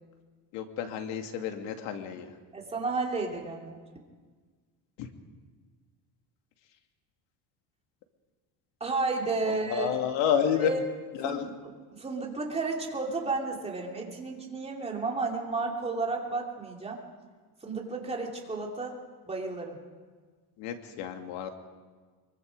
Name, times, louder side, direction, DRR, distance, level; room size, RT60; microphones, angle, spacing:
voice 1, 0.5-2.3 5.0-5.1 9.5-10.7 11.2-11.5 20.6-21.5, left 8 dB, 85° left, 5 dB, 2.3 m, -30 dB
voice 2, 2.5-4.0 8.8-9.9 10.6-10.8 11.2-11.5 11.9-17.0 17.6-19.0 19.3-19.8, right 3 dB, 15° right, 0 dB, 2.9 m, -32 dB
23.5 x 23.5 x 5.3 m, 1.5 s
cardioid pair, 155°, 42 cm